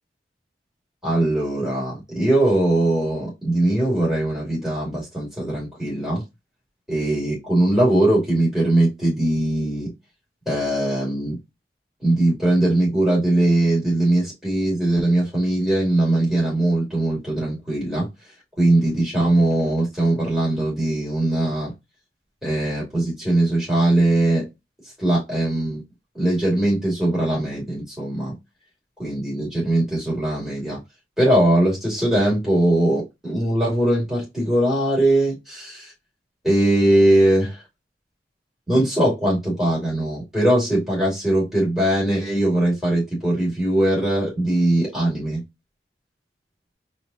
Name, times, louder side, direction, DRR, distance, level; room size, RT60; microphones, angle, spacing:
voice 1, 1.0-6.2 6.9-9.9 10.5-11.4 12.0-18.1 18.6-21.7 22.4-24.5 25.0-25.8 26.1-28.3 29.0-30.8 31.2-35.9 36.4-37.6 38.7-45.4, right 1 dB, ahead, -6 dB, 2.6 m, -20 dB
4.3 x 2.8 x 4.1 m, 0.22 s
head